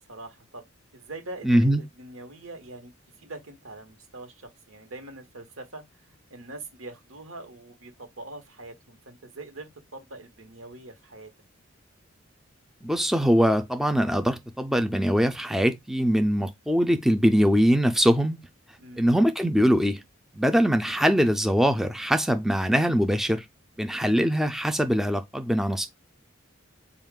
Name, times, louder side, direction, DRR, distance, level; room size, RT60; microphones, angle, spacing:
voice 1, 0.0-2.9 3.2-11.3 18.8-19.1, right 2 dB, 90° right, 1.0 m, -43 dB
voice 2, 1.4-1.8 12.8-18.5 19.0-20.0 20.3-23.5 23.8-25.9, equal, ahead, 0.3 m, -22 dB
4.0 x 2.3 x 3.6 m
head